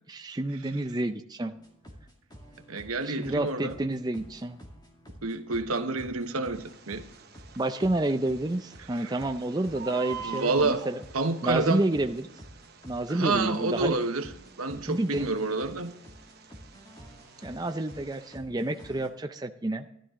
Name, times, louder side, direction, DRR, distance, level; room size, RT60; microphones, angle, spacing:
voice 1, 0.1-1.5 3.0-4.6 7.6-11.0 11.4-12.3 12.9-14.0 14.8-15.3 17.4-19.9, right 2 dB, 20° right, 0.5 m, -29 dB
sound 1, 1.5-19.1, equal, 20° left, 2.2 m, -50 dB
voice 2, 2.7-3.8 5.2-7.0 9.0-9.2 10.2-10.9 11.1-11.8 13.1-14.3 14.6-15.9, right 3 dB, 85° right, 1.1 m, -28 dB
Bird, 6.5-18.4, right 5 dB, 50° right, 1.1 m, -47 dB
13.0 x 12.0 x 3.7 m
head